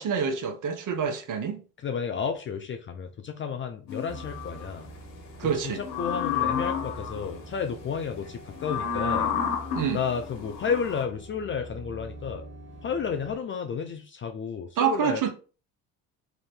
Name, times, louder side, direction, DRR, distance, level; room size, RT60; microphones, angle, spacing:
voice 1, 0.0-1.6 5.4-5.8 9.7-10.0 14.8-15.3, right 7 dB, 45° right, 0.8 m, -27 dB
voice 2, 1.8-4.9 5.4-9.3 9.9-12.4 12.8-15.3, left 6 dB, 30° left, 0.4 m, -32 dB
sound 1, 3.9-4.7 5.8-7.3 8.5-11.0, left 8 dB, 75° left, 0.9 m, -31 dB
sound 2, 4.1-13.4, right 2 dB, 25° right, 1.5 m, -44 dB
2.8 x 2.5 x 3.3 m
hypercardioid pair, 70°, 45 cm